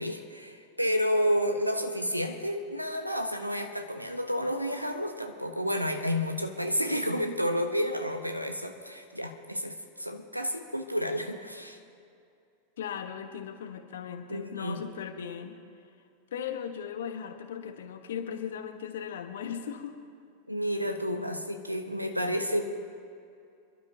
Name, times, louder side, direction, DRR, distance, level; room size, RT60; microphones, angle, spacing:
voice 1, 0.0-11.8 14.3-14.9 20.5-22.7, equal, 90° right, 7 dB, 1.0 m, -30 dB
voice 2, 12.8-15.6 16.3-20.0, left 8 dB, 60° left, 7 dB, 1.2 m, -37 dB
26.5 x 12.0 x 2.8 m, 2.5 s
figure-of-eight pair, 90°, 0 cm